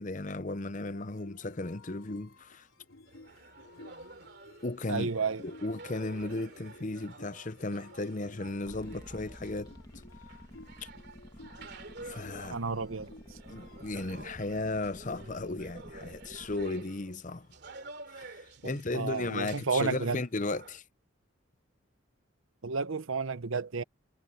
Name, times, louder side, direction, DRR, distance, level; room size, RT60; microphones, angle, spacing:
voice 1, 0.0-2.7 4.6-5.1 5.4-9.7 10.8-10.9 12.0-12.6 13.5-17.5 18.1-20.8, left 2 dB, 35° left, 0.7 m, -35 dB
sound 1, 0.6-14.2, left 2 dB, 80° left, 3.2 m, -55 dB
sound 2, 3.1-20.8, right 2 dB, 50° right, 2.9 m, -50 dB
voice 2, 4.9-5.4 12.5-13.1 18.6-20.2 22.6-23.8, right 4 dB, 70° right, 0.8 m, -31 dB
sound 3, 8.7-16.7, equal, 20° left, 2.0 m, -51 dB
head